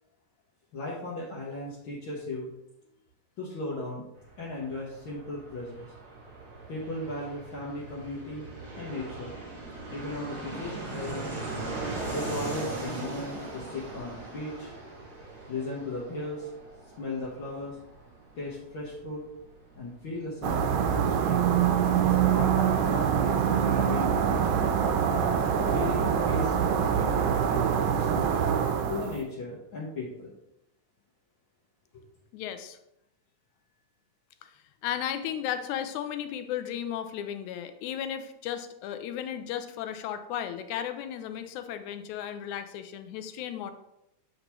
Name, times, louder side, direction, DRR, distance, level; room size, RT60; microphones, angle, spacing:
voice 1, 0.7-2.5 3.4-4.0 4.4-5.9 6.7-8.5 8.8-9.4 9.9-11.3 12.1-14.7 15.5-16.5 17.0-17.8 18.4-19.2 19.8-21.4 22.0-24.8 25.6-28.3 28.9-30.3, left 2 dB, 60° left, -6 dB, 1.4 m, -36 dB
Fixed-wing aircraft airplane, 4.1-22.5 22.8-22.9 23.1-23.8, right 3 dB, 40° right, 1.7 m, -40 dB
sound 1, 20.4-29.2, right 8 dB, 80° right, 1.7 m, -25 dB
voice 2, 32.3-32.8 34.4-43.7, left 10 dB, 80° left, 9 dB, 1.9 m, -35 dB
8.0 x 5.2 x 3.0 m, 0.85 s
omnidirectional pair, 3.5 m